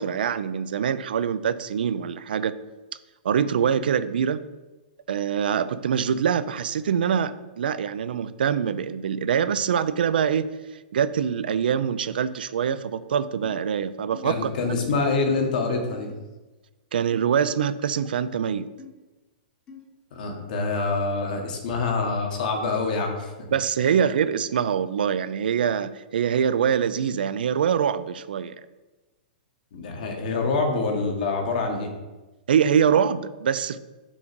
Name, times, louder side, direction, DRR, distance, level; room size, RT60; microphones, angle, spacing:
voice 1, 0.0-2.6 3.2-4.4 5.1-10.5 10.9-14.8 16.9-18.7 23.5-28.6 32.5-33.8, right 8 dB, 80° right, 14 dB, 0.4 m, -24 dB
sound 1, 12.6-12.8 13.4-13.5 14.1-14.2 14.8-15.0 15.9-16.1 17.1-17.3 17.9-18.1 18.8-18.9 19.7-19.8, left 6 dB, 20° left, 1.0 m, -44 dB
voice 2, 14.2-16.1 20.1-23.3 29.7-31.9, left 3 dB, 60° left, 2 dB, 1.5 m, -26 dB
6.1 x 3.9 x 6.1 m, 1.1 s
hypercardioid pair, 160°, 5 cm